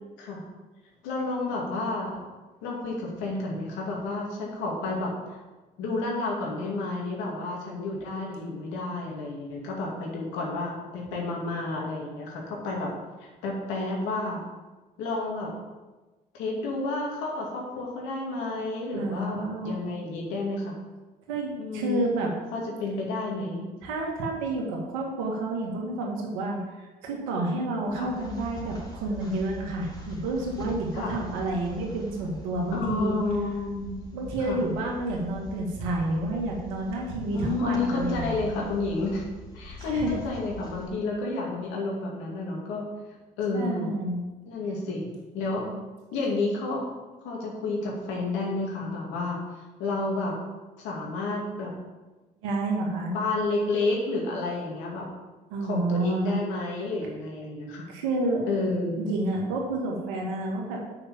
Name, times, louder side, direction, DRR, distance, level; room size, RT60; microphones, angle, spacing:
voice 1, 1.0-2.2 2.6-5.4 5.8-12.9 13.2-14.4 15.0-15.5 16.3-20.8 21.6-22.1 22.5-23.6 27.9-28.1 30.9-31.2 32.7-34.0 34.4-34.6 37.3-39.2 39.5-42.9 43.4-44.0 44.4-45.1 45.3-45.7 46.1-46.9 47.2-49.4 49.8-50.3 50.8-51.7 53.1-55.1 55.6-57.9 58.5-59.1, left 3 dB, 80° left, -2 dB, 2.3 m, -30 dB
voice 2, 18.9-20.0 21.3-22.3 23.8-33.2 34.1-38.4 39.8-40.2 43.5-44.2 52.4-53.1 55.5-56.4 57.9-58.4 59.0-60.8, right 2 dB, 85° right, -1 dB, 1.9 m, -29 dB
sound 1, 27.8-40.9, left 1 dB, 20° left, 3.4 m, -43 dB
6.4 x 5.9 x 7.3 m, 1.2 s
hypercardioid pair, 55°, 19 cm